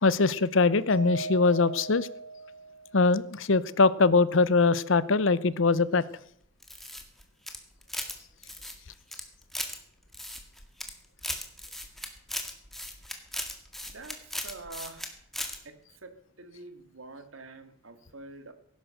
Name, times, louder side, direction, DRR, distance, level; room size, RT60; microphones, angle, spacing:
voice 1, 0.0-2.1 2.9-6.0, left 3 dB, 70° left, 18 dB, 0.8 m, -22 dB
Mallet percussion, 0.9-3.2, right 3 dB, 45° left, 3.1 m, -38 dB
sound 1, 6.6-8.2 8.4-9.8 10.1-10.9 11.2-15.1 15.3-15.6, left 1 dB, ahead, 1.9 m, -37 dB
voice 2, 13.9-15.2 15.6-18.5, right 2 dB, 85° right, 9 dB, 2.0 m, -46 dB
17.5 x 10.5 x 6.6 m, 0.67 s
head